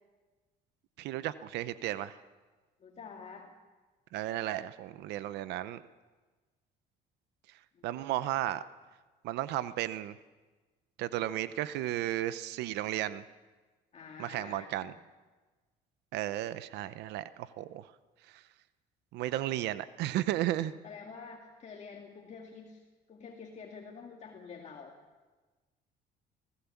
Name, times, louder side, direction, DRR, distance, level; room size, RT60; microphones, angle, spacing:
voice 1, 1.0-2.2 4.1-5.8 7.8-8.6 9.2-10.2 11.0-13.2 14.2-14.9 16.1-17.9 18.3-18.4 19.1-20.7, right 14 dB, 85° right, 15 dB, 0.7 m, -34 dB
voice 2, 2.8-3.5 7.7-7.9 13.9-14.9 20.8-22.8 23.1-25.0, left 5 dB, 40° left, 1 dB, 2.0 m, -48 dB
24.0 x 16.0 x 7.1 m, 1.3 s
cardioid pair, 110°, 17 cm